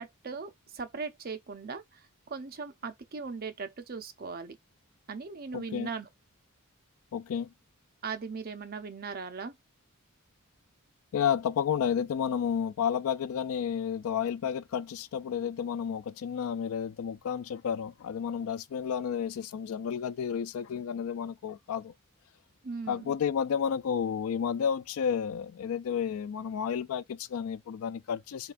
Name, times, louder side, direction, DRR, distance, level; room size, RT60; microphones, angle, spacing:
voice 1, 0.0-4.6 5.1-6.1 8.0-9.6 22.6-23.1, right 5 dB, 45° right, 0.6 m, -39 dB
voice 2, 5.5-5.9 7.1-7.5 11.1-21.9 22.9-28.5, left 7 dB, 65° left, 0.3 m, -31 dB
6.8 x 2.3 x 2.5 m
head